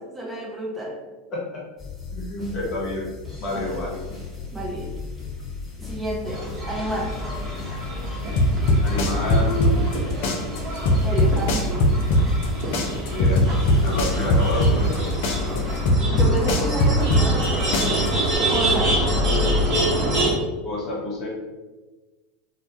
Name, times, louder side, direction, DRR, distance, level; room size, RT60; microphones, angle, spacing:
voice 1, 0.1-1.0 3.5-3.8 4.5-4.9 5.8-7.1 11.0-11.9 16.1-18.1 18.5-19.0, right 1 dB, 10° right, -2 dB, 0.5 m, -30 dB
voice 2, 1.3-1.6 2.1-3.1 3.4-4.1 8.8-10.6 13.1-13.6 13.8-15.7 16.0-16.3 20.6-21.3, left 1 dB, 45° left, -3 dB, 0.8 m, -30 dB
sound 1, 1.8-15.9, left 4 dB, 10° left, 0.9 m, -34 dB
sound 2, 6.3-20.3, right 1 dB, 40° right, 0.8 m, -26 dB
sound 3, 8.4-10.0 10.2-12.5 12.7-15.0 15.2-17.5 17.7-18.4, left 1 dB, 60° left, 0.4 m, -19 dB
2.2 x 2.1 x 2.7 m, 1.2 s
hypercardioid pair, 85°, 0 cm